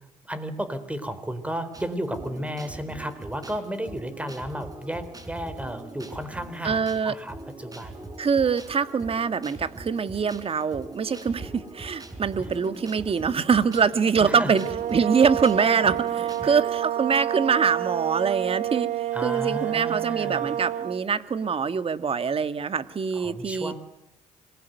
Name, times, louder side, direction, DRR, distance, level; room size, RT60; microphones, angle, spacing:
voice 1, 0.2-8.1 12.4-12.5 14.2-14.5 16.4-16.6 19.1-20.5 23.1-23.7, equal, 10° right, 12 dB, 4.1 m, -33 dB
sound 1, 1.7-16.5, right 2 dB, 25° right, 5.4 m, -42 dB
voice 2, 6.6-7.1 8.2-14.6 14.9-23.7, right 6 dB, 40° right, 12 dB, 1.9 m, -24 dB
sound 2, 14.4-21.0, right 12 dB, 60° right, 0.9 m, -29 dB
26.5 x 20.5 x 9.4 m, 0.88 s
cardioid pair, 95°, 14 cm